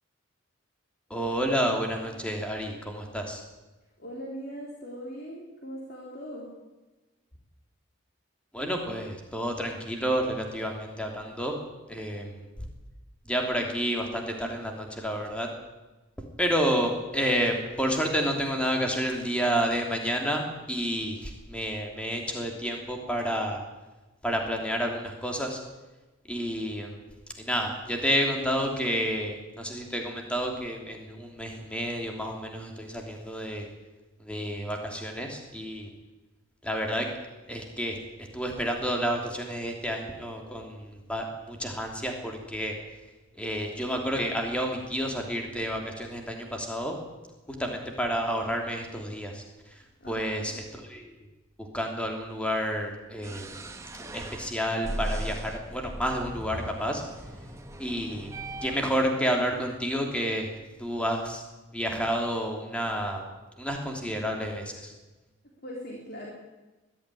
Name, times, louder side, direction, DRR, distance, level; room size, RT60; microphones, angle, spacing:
voice 1, 1.1-3.4 8.5-11.5 11.9-12.3 13.3-15.5 16.4-20.4 20.7-23.6 24.2-25.6 26.3-27.0 27.4-33.6 34.2-35.9 36.6-37.1 37.5-38.0 38.3-42.7 43.4-46.9 47.6-49.4 50.1-51.1 51.7-53.4 54.1-57.0 57.8-58.3 58.6-60.5 60.8-61.4 61.7-63.2 63.6-64.9, equal, 5° left, 2 dB, 3.0 m, -30 dB
voice 2, 4.0-6.5 50.0-50.5 65.6-66.3, equal, 50° left, -2 dB, 3.6 m, -40 dB
sound 1, 53.2-58.9, right 1 dB, 15° right, 1.5 m, -38 dB
21.0 x 13.0 x 10.0 m, 1.1 s
head